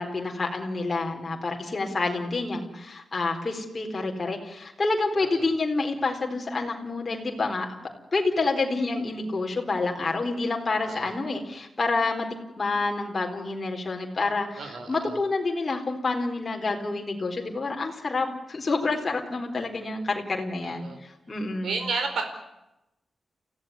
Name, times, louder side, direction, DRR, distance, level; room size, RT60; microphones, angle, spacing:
voice 1, 0.0-7.8 8.1-12.3 12.6-14.6 14.9-20.9 21.3-21.8, left 3 dB, 30° left, 2 dB, 4.3 m, -28 dB
voice 2, 14.6-15.2 20.6-21.0 21.6-22.2, right 4 dB, 75° right, 6 dB, 4.6 m, -32 dB
29.5 x 16.5 x 9.8 m, 0.91 s
wide cardioid pair, 175°, 0 cm